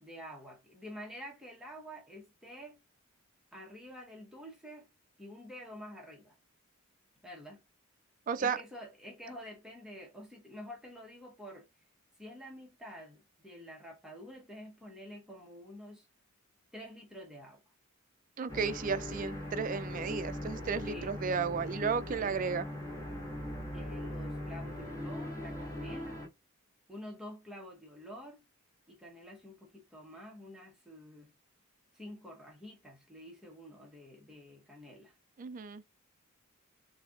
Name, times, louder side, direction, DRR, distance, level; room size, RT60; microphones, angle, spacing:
voice 1, 0.0-2.8 3.5-4.9 5.2-6.4 7.2-7.6 8.4-11.7 12.2-16.1 16.7-17.6 20.9-21.3 22.2-22.3 23.7-26.2 26.9-28.4 28.9-31.3 31.9-35.1, equal, 5° right, 0.9 m, -48 dB
voice 2, 8.3-8.6 18.4-22.7 35.4-35.8, right 5 dB, 35° right, 0.3 m, -33 dB
sound 1, 18.5-26.3, left 1 dB, 15° left, 1.6 m, -40 dB
6.5 x 2.7 x 2.4 m
head